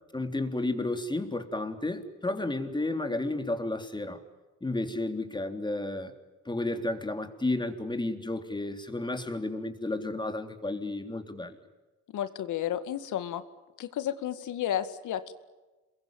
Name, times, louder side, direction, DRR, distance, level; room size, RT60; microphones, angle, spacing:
voice 1, 0.1-4.2 4.6-6.1 6.5-11.6, left 2 dB, 15° left, 7 dB, 3.7 m, -32 dB
voice 2, 12.1-13.4 13.8-15.3, left 10 dB, 80° left, 11 dB, 2.2 m, -32 dB
28.0 x 22.0 x 9.3 m, 1.2 s
cardioid pair, 90°, 30 cm